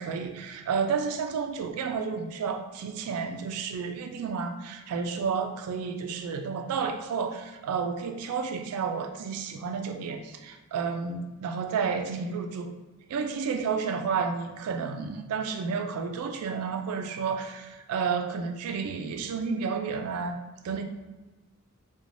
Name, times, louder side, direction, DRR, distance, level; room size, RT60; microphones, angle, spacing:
voice 1, 0.0-12.7 13.1-20.4 20.6-20.8, right 5 dB, 80° right, 6 dB, 0.3 m, -31 dB
3.1 x 2.2 x 2.5 m, 1.1 s
head